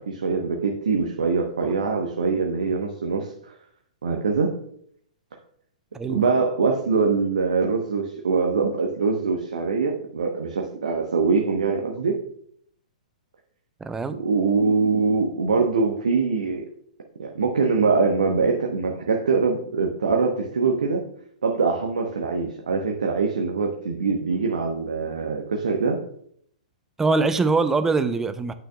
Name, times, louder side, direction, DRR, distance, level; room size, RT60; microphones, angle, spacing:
voice 1, 0.1-3.5 4.0-4.5 6.1-12.2 14.1-16.7 17.2-21.0 21.4-26.0, right 4 dB, 65° right, 1 dB, 1.0 m, -23 dB
voice 2, 13.8-14.2 27.0-28.5, right 3 dB, 10° right, 11 dB, 0.5 m, -23 dB
9.3 x 6.2 x 2.3 m, 0.67 s
figure-of-eight pair, 110°, 4 cm